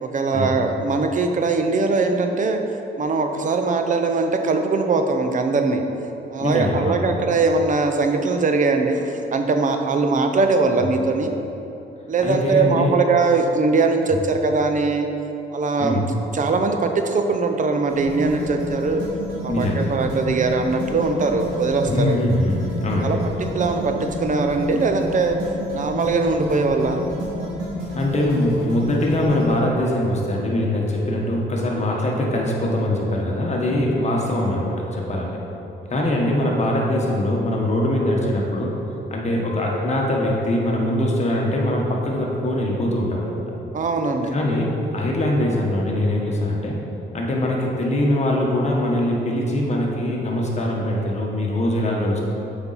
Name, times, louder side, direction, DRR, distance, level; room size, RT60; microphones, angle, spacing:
voice 1, 0.0-2.6 3.0-5.8 6.3-11.3 12.1-15.1 15.5-16.0 16.3-19.0 19.4-22.1 23.0-25.4 25.7-27.0 43.7-44.3, right 3 dB, 40° right, 5 dB, 0.6 m, -21 dB
voice 2, 6.4-7.2 10.8-10.9 12.2-12.9 15.8-16.0 19.5-19.9 21.9-23.2 27.9-35.3 35.9-38.7 39.1-43.4 44.3-46.8 47.1-52.2, left 1 dB, 35° left, -2 dB, 1.4 m, -22 dB
sound 1, 17.9-29.5, right 1 dB, 85° right, 1.6 m, -30 dB
7.0 x 5.3 x 4.2 m, 3.0 s
cardioid pair, 90°, 20 cm